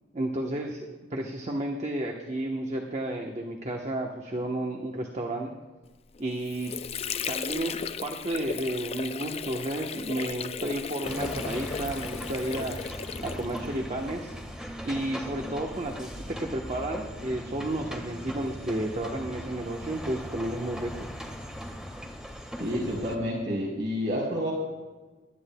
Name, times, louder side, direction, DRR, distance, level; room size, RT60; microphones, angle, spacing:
voice 1, 0.1-5.5 6.2-6.8 7.3-12.8 13.2-14.3 14.8-21.1, right 1 dB, 40° right, 1 dB, 1.1 m, -32 dB
Water / Sink (filling or washing), 6.1-13.8, left 6 dB, 35° left, 0.4 m, -36 dB
sound 1, 11.0-23.2, equal, 5° right, 1.4 m, -39 dB
voice 2, 22.6-24.5, equal, 70° right, -4 dB, 4.0 m, -29 dB
24.0 x 12.0 x 2.3 m, 1.3 s
head